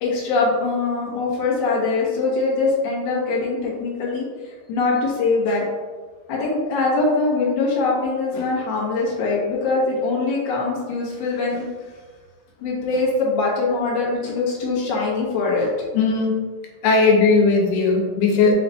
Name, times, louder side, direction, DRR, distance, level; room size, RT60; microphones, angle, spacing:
voice 1, 0.0-5.6 6.3-11.7 12.6-15.7, left 3 dB, 65° left, -5 dB, 1.1 m, -22 dB
voice 2, 15.9-16.4 16.8-18.5, left 4 dB, 85° left, 1 dB, 2.3 m, -17 dB
5.5 x 2.3 x 4.0 m, 1.4 s
omnidirectional pair, 3.7 m